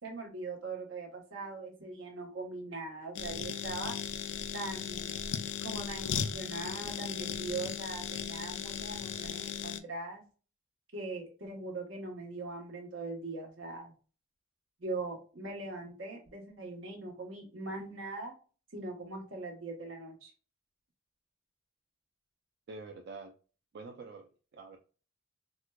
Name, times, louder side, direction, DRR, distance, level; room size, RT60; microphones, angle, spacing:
voice 1, 0.0-4.0 4.5-5.2 5.6-10.2 10.9-13.9 14.8-18.3 18.7-20.3, right 3 dB, 80° right, 1 dB, 1.1 m, -41 dB
sound 1, 3.2-9.8, left 8 dB, 65° left, 0.3 m, -37 dB
voice 2, 22.7-23.3 23.7-24.8, right 3 dB, 55° right, 2 dB, 0.4 m, -46 dB
4.1 x 2.2 x 2.2 m, 0.37 s
head